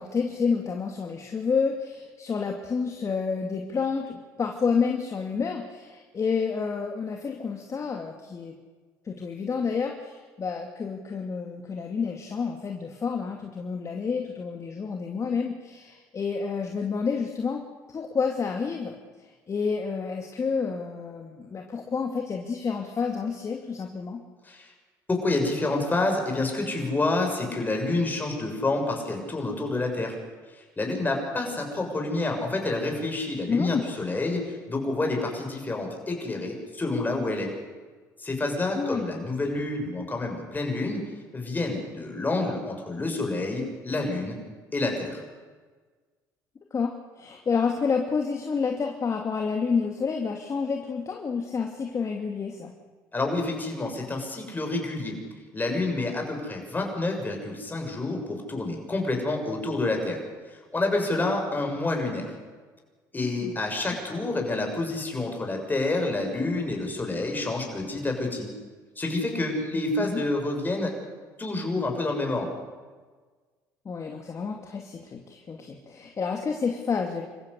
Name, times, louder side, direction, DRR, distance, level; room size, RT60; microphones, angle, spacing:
voice 1, 0.0-8.5 9.0-17.6 17.9-18.9 19.5-24.2 33.5-33.8 38.8-39.0 46.7-52.7 63.2-63.5 64.1-64.3 69.7-70.2 73.8-77.2, left 5 dB, 35° left, 2 dB, 2.5 m, -29 dB
voice 2, 25.1-30.1 30.8-37.5 38.2-41.0 41.3-44.4 44.7-45.2 53.1-55.2 55.5-60.2 60.7-62.3 63.1-68.5 69.0-70.9 71.4-72.5, left 2 dB, 20° left, 2 dB, 7.0 m, -28 dB
27.0 x 15.0 x 8.3 m, 1.4 s
supercardioid pair, 75°, 9 cm